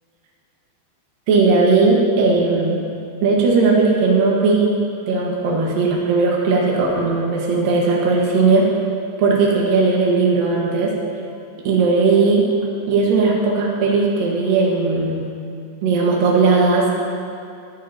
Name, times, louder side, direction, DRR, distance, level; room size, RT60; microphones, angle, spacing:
voice 1, 1.3-2.8 3.2-4.8 5.1-8.7 9.2-10.9 11.6-12.5 12.9-15.2 15.8-17.0, right 4 dB, 60° right, -3 dB, 3.1 m, -17 dB
18.0 x 11.5 x 3.0 m, 2.5 s
omnidirectional pair, 4.9 m